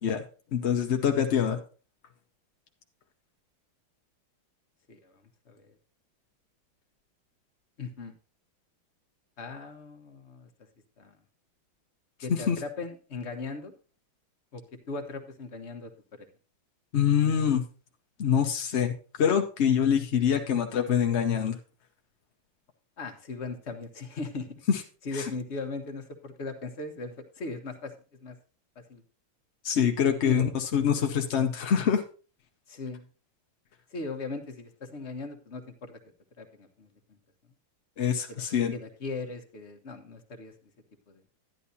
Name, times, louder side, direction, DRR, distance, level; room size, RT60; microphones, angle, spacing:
voice 1, 0.5-1.6 12.3-12.6 16.9-17.6 18.2-18.9 19.2-21.6 24.7-24.8 25.1-25.3 29.6-32.0 38.0-38.7, left 8 dB, 60° left, 4 dB, 0.7 m, -25 dB
voice 2, 7.8-8.1 9.4-10.5 11.0-11.1 12.2-13.7 14.5-16.3 23.0-24.6 25.0-27.9 28.2-28.3 28.9-29.0 30.2-30.5 32.7-33.1 33.9-36.0 36.4-36.9 38.3-38.4 38.7-40.5 41.1-41.2, left 3 dB, 40° left, 5 dB, 1.2 m, -38 dB
11.0 x 10.5 x 2.8 m, 0.36 s
omnidirectional pair, 2.2 m